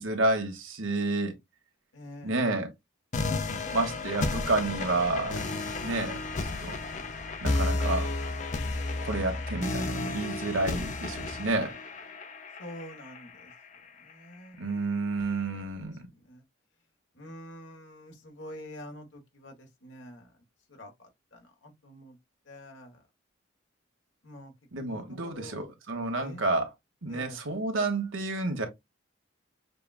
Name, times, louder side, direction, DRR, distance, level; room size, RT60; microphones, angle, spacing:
voice 1, 0.0-1.3 2.2-2.7 3.7-6.2 6.6-6.8 7.4-8.1 9.0-11.8 14.6-16.1 24.7-26.7 27.0-28.7, right 2 dB, 80° right, 1.2 m, -30 dB
voice 2, 1.9-2.5 8.9-9.5 12.6-13.5 14.0-15.0 15.5-15.7 16.1-16.4 17.1-20.3 20.7-22.2 22.5-23.0 24.2-24.5 24.9-25.6 26.2-26.4 27.1-27.4, equal, 70° left, 1.2 m, -47 dB
sound 1, 3.1-14.1, left 3 dB, 35° left, 0.5 m, -32 dB
6.6 x 2.3 x 2.3 m
head